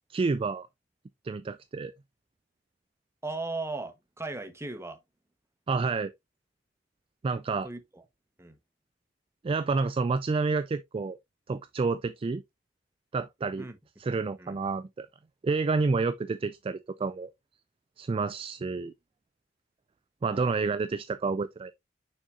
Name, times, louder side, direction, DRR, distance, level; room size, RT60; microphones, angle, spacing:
voice 1, 0.1-0.7 1.2-1.9 5.7-6.1 7.2-7.7 9.4-11.2 11.5-12.4 13.1-13.7 14.0-15.1 15.4-17.3 18.0-18.9 20.2-21.7, right 4 dB, 30° right, 0.3 m, -29 dB
voice 2, 3.2-5.0 7.6-8.0 8.4-8.6 13.6-13.8 14.4-14.6 20.3-20.8, right 3 dB, 15° right, 0.9 m, -37 dB
6.4 x 6.3 x 2.4 m
head